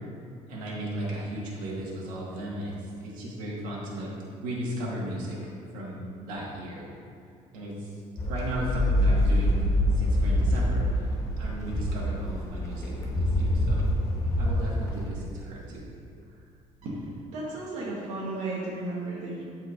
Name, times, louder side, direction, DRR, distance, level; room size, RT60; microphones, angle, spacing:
voice 1, 0.5-2.7 3.0-4.1 4.4-6.9 7.5-7.9 8.2-9.7 9.9-10.9 11.4-13.8 14.4-15.9, equal, 85° right, -5 dB, 1.8 m, -35 dB
sound 1, 8.2-15.1, left 1 dB, 25° left, 0.8 m, -25 dB
voice 2, 16.8-19.4, right 2 dB, 65° right, -7 dB, 1.4 m, -34 dB
13.0 x 4.4 x 2.6 m, 2.4 s
cardioid pair, 165°, 13 cm